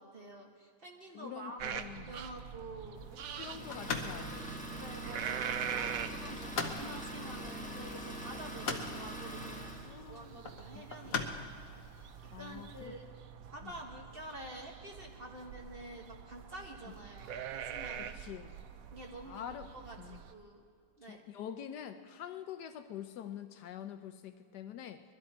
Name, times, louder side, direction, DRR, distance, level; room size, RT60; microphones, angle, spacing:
voice 1, 0.0-3.5 4.8-9.7 10.1-11.5 12.0-12.1 12.4-13.0 13.5-18.3 18.9-19.4 19.7-20.6 21.0-21.2, right 1 dB, 35° right, 0 dB, 1.4 m, -48 dB
voice 2, 1.1-2.1 3.4-4.5 9.8-10.5 10.7-11.2 12.3-12.9 13.6-13.7 18.0-18.5 19.3-19.7 20.0-20.2 21.0-25.0, left 9 dB, 70° left, 9 dB, 1.2 m, -46 dB
sound 1, 1.6-20.3, right 8 dB, 65° right, 0.9 m, -44 dB
sound 2, 2.9-12.9, left 5 dB, 55° left, 1.3 m, -43 dB
Idling, 3.4-9.9, right 1 dB, 5° left, 1.2 m, -43 dB
21.5 x 12.5 x 4.3 m, 2.2 s
omnidirectional pair, 1.9 m